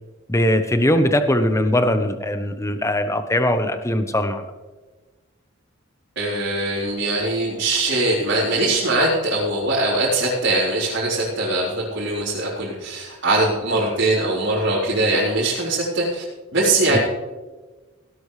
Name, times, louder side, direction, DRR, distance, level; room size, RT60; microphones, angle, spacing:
voice 1, 0.3-4.4 16.9-17.0, left 1 dB, 15° left, 8 dB, 0.9 m, -20 dB
voice 2, 6.2-16.2 16.5-17.0, right 2 dB, 60° right, -8 dB, 3.8 m, -21 dB
17.0 x 12.0 x 3.3 m, 1.2 s
head